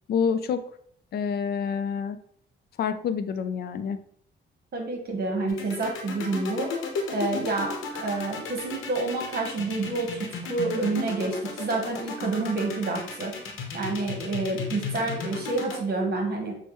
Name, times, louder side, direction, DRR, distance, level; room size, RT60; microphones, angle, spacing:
voice 1, 0.1-0.7 1.1-2.2 2.8-4.0, left 6 dB, 55° left, 10 dB, 0.4 m, -27 dB
voice 2, 4.7-6.7 7.1-13.3 13.7-16.5, right 3 dB, 50° right, 1 dB, 1.2 m, -28 dB
sound 1, 5.5-15.8, left 5 dB, 85° left, 0.8 m, -34 dB
6.2 x 2.2 x 3.0 m, 0.65 s
cardioid pair, 90°, 20 cm